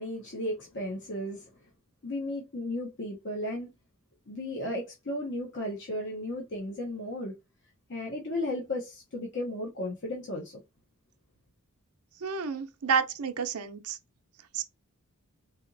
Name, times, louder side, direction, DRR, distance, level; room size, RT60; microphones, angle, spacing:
voice 1, 0.0-1.5 2.0-3.7 4.3-7.3 7.9-10.6, left 1 dB, 55° left, 0.8 m, -34 dB
voice 2, 12.2-14.0 14.5-14.6, right 6 dB, 85° right, 0.6 m, -30 dB
4.2 x 2.9 x 2.6 m
head